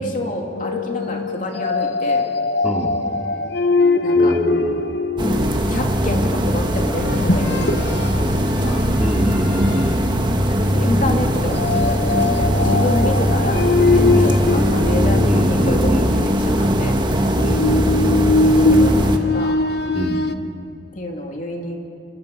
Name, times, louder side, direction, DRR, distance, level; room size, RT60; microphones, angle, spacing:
voice 1, 0.0-2.2 4.0-4.3 5.6-8.9 10.5-13.6 13.9-17.0 18.4-19.6 20.9-21.8, left 1 dB, 45° left, 1 dB, 2.8 m, -28 dB
sound 1, 0.6-5.8 7.0-8.2 8.7-8.9 9.4-9.9 11.5-16.0 17.3-20.3, left 3 dB, 65° left, 1.0 m, -21 dB
voice 2, 2.6-3.0 4.1-4.9 9.0-10.0 14.1-14.5 15.2-16.1 17.4-17.8 19.9-20.2, equal, 5° right, 0 dB, 2.3 m, -24 dB
sound 2, 5.2-19.2, equal, 25° right, 1.6 m, -19 dB
28.5 x 26.5 x 5.6 m, 2.7 s
head